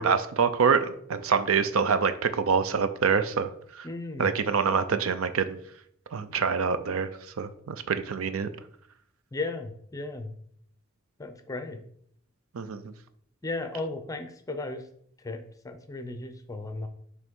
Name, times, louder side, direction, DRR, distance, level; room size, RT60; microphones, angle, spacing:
voice 1, 0.0-3.9 4.2-5.6 6.1-7.1 7.4-8.5 12.5-12.9, right 6 dB, 90° right, 11 dB, 0.5 m, -26 dB
voice 2, 3.8-4.3 9.3-10.4 11.2-11.8 13.4-14.8 15.2-16.9, left 2 dB, 15° left, 8 dB, 0.6 m, -35 dB
5.9 x 3.2 x 5.3 m, 0.66 s
head